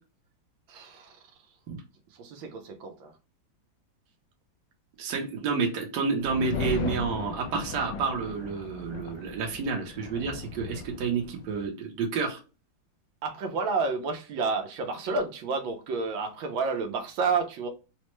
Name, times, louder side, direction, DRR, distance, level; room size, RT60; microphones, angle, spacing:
voice 1, 0.7-1.2 2.1-3.1 13.2-17.7, right 4 dB, 85° right, 1.4 m, -30 dB
voice 2, 5.0-12.4, right 5 dB, 65° right, 1.4 m, -30 dB
sound 1, 6.2-11.7, left 3 dB, 75° left, 1.1 m, -37 dB
4.0 x 2.1 x 3.0 m
omnidirectional pair, 2.1 m